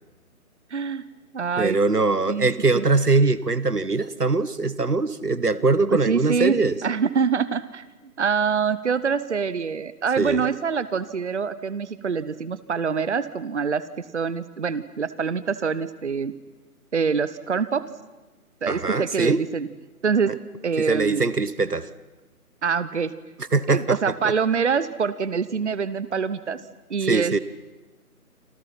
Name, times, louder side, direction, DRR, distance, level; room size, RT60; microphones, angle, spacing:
voice 1, 0.7-1.0 1.3-1.8 2.3-2.5 2.7-2.8 5.9-7.8 8.2-16.3 16.9-17.8 18.6-19.7 20.0-20.3 20.6-21.2 22.6-23.1 23.7-26.6 26.9-27.4, right 6 dB, 50° right, 16 dB, 1.0 m, -25 dB
voice 2, 1.6-6.8 10.2-10.4 18.7-19.4 20.8-21.9 23.5-24.0 27.1-27.4, right 3 dB, 85° right, 17 dB, 1.3 m, -22 dB
28.5 x 27.0 x 5.8 m, 1.1 s
figure-of-eight pair, 145°, 45 cm